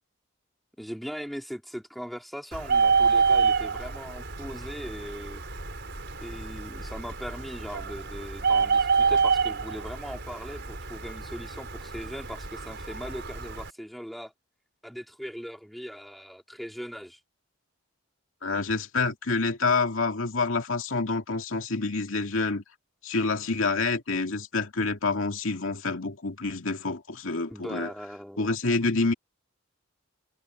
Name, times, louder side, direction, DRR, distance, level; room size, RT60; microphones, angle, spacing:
voice 1, 0.8-5.4 6.2-14.3 14.8-17.2 27.5-28.5, equal, ahead, 3.2 m, -39 dB
Bird, 2.5-13.7, right 5 dB, 55° right, 5.3 m, -27 dB
voice 2, 18.4-22.6 23.0-27.9 28.4-29.1, left 3 dB, 70° left, 2.3 m, -27 dB
head